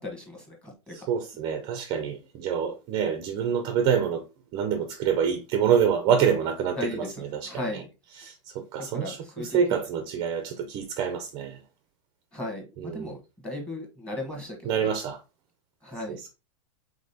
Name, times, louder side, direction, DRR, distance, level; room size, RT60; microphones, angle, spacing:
voice 1, 0.0-1.1 6.7-7.9 8.8-9.8 12.3-14.9 15.8-16.2, left 2 dB, 5° left, 1.2 m, -37 dB
voice 2, 1.1-4.2 4.5-7.0 7.3-7.5 8.2-11.6 12.8-13.2 14.7-15.2, right 7 dB, 25° right, 0.4 m, -26 dB
5.1 x 3.7 x 2.7 m
supercardioid pair, 170°, 17 cm